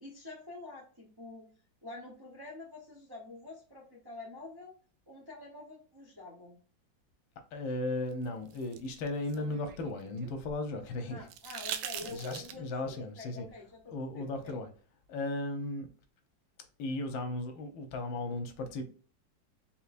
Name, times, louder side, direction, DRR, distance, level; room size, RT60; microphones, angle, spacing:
voice 1, 0.0-1.5 1.8-4.7 5.1-6.6 11.1-14.6, left 2 dB, 25° right, 0.6 m, -47 dB
voice 2, 7.5-11.3 12.0-13.5 13.9-14.7 15.1-15.9 16.8-18.9, left 2 dB, 85° left, 1.6 m, -36 dB
sound 1, 8.1-10.4 11.3-12.8 14.5-14.6, right 10 dB, 80° right, 1.3 m, -42 dB
4.4 x 3.7 x 2.5 m
omnidirectional pair, 2.1 m